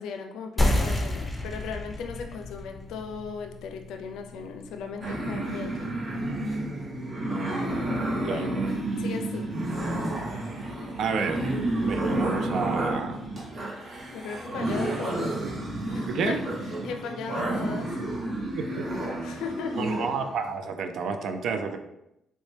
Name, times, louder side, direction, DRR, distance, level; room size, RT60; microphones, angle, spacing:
voice 1, 0.0-6.0 8.0-9.6 14.1-15.4 15.9-16.4 16.8-18.0 19.2-19.8, left 5 dB, 85° left, 5 dB, 0.4 m, -37 dB
sound 1, 0.6-5.7, left 1 dB, 10° left, 0.6 m, -30 dB
sound 2, 5.0-20.4, right 1 dB, 45° right, 1.0 m, -30 dB
voice 2, 11.0-11.5 11.8-13.2 16.1-16.4 18.5-18.8 19.8-21.8, right 5 dB, 70° right, 6 dB, 0.4 m, -30 dB
4.1 x 2.2 x 3.2 m, 0.84 s
cardioid pair, 90°, 0 cm